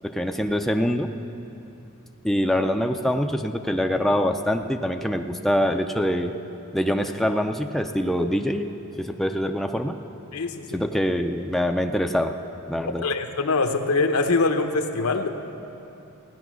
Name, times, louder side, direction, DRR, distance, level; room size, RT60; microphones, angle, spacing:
voice 1, 0.0-1.1 2.2-6.4 6.7-8.7 9.0-10.0 10.7-12.4 12.7-13.1, equal, ahead, 4 dB, 0.4 m, -24 dB
voice 2, 10.3-10.8 13.0-15.3, left 3 dB, 80° left, 6 dB, 0.9 m, -23 dB
16.0 x 10.0 x 6.2 m, 2.9 s
head